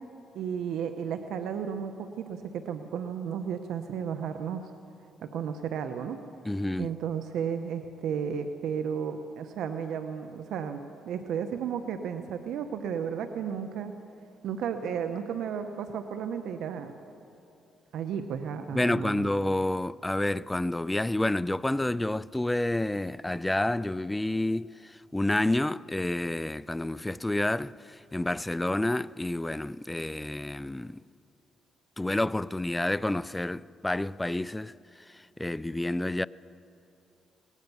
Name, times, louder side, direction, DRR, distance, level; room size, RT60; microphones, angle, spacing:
voice 1, 0.3-4.7 5.2-6.2 6.8-10.8 11.0-13.9 14.4-16.9 17.9-19.3, right 7 dB, 80° right, 0.9 m, -33 dB
voice 2, 6.4-6.9 18.7-31.0 32.0-34.7 35.1-36.3, left 1 dB, 10° left, 0.4 m, -29 dB
21.5 x 19.0 x 7.0 m
cardioid pair, 90°, 0 cm